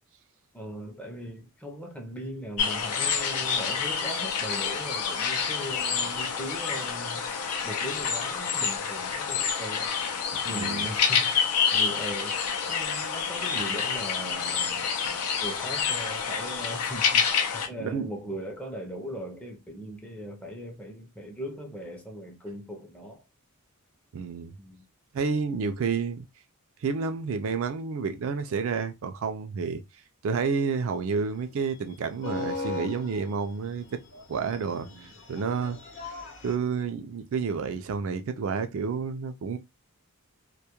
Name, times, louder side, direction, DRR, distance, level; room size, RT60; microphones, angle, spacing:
voice 1, 0.5-7.3 7.7-9.9 10.4-11.4 11.7-12.4 12.7-17.3 17.5-23.2 24.6-24.8 34.7-35.1, equal, 5° left, 0.5 m, -39 dB
sound 1, 2.6-17.7, left 6 dB, 85° left, 0.5 m, -28 dB
voice 2, 10.3-10.9 17.8-18.1 24.1-24.6 25.1-26.3 26.8-29.8 30.2-34.0 34.3-34.9 35.3-35.8 36.4-39.6, right 5 dB, 60° right, 0.3 m, -30 dB
sound 2, 30.8-36.6, left 3 dB, 55° left, 0.8 m, -39 dB
2.2 x 2.1 x 2.8 m
head